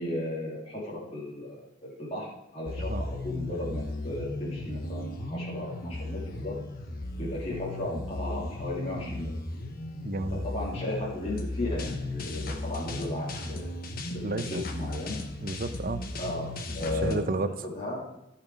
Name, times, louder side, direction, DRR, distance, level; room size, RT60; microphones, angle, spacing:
voice 1, 0.0-6.5 7.2-9.3 10.4-13.7 14.5-15.2 16.2-17.2 17.6-18.0, left 1 dB, 35° left, -7 dB, 2.8 m, -35 dB
sound 1, 2.7-17.2, left 2 dB, 50° left, 1.1 m, -36 dB
voice 2, 9.9-10.5 14.2-14.6 15.4-16.0 17.0-17.5, right 2 dB, 45° right, 10 dB, 0.7 m, -31 dB
15.0 x 6.0 x 4.7 m, 0.90 s
head